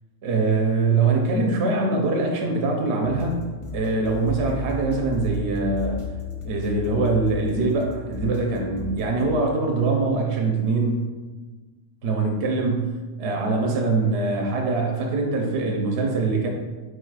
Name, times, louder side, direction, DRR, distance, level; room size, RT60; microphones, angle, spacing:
voice 1, 0.2-3.4 3.7-6.0 6.4-11.1 12.0-16.5, right 3 dB, 65° right, 1 dB, 0.9 m, -23 dB
sound 1, 3.0-9.3, left 3 dB, 35° left, 0.5 m, -34 dB
4.6 x 2.4 x 4.7 m, 1.3 s
omnidirectional pair, 1.2 m